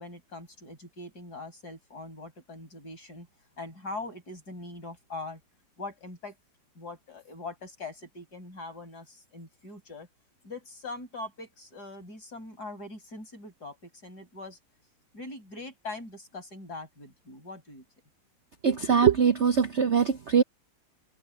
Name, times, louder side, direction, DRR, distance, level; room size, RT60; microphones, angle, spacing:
voice 1, 0.0-3.3 3.6-5.4 5.8-6.4 6.7-10.1 10.4-14.6 15.1-17.8, left 2 dB, 55° left, 6.3 m, -42 dB
voice 2, 18.6-20.4, right 6 dB, 50° right, 0.8 m, -22 dB
omnidirectional pair, 2.0 m